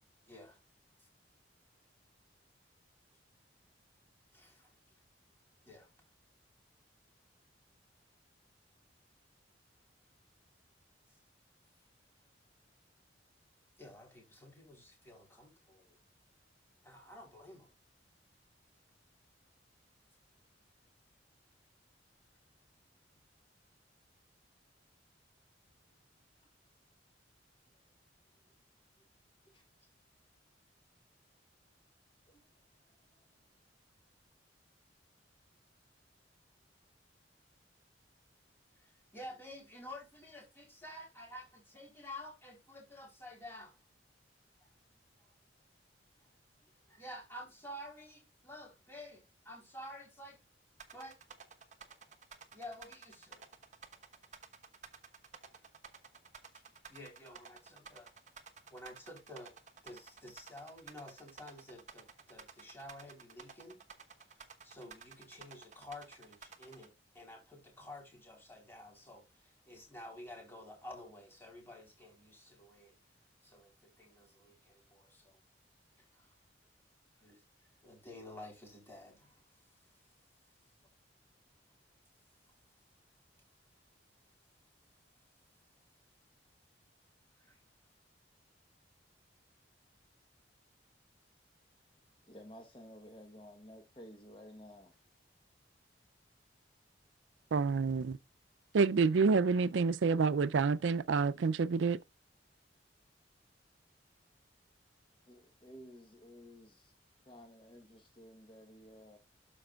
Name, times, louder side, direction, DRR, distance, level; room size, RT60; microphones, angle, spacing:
voice 1, 0.3-0.6 1.0-1.1 4.3-4.7 5.7-5.9 13.8-16.0 16.8-17.7 38.8-43.8 46.9-50.4 50.9-51.2 52.5-53.4 56.9-58.1 58.7-59.5 59.8-63.8 64.2-73.0 73.4-75.4 76.0-76.3 77.2-79.7 87.4-87.6, left 1 dB, 10° left, 3.7 m, -51 dB
voice 2, 32.3-32.6 32.9-33.3 92.3-95.0 105.3-106.9 107.2-109.2, equal, 30° left, 1.1 m, -54 dB
sound 1, 50.8-66.9, right 6 dB, 40° right, 1.1 m, -53 dB
voice 3, 97.5-98.2 98.7-102.0, right 4 dB, 85° right, 0.4 m, -28 dB
13.0 x 5.2 x 2.3 m
head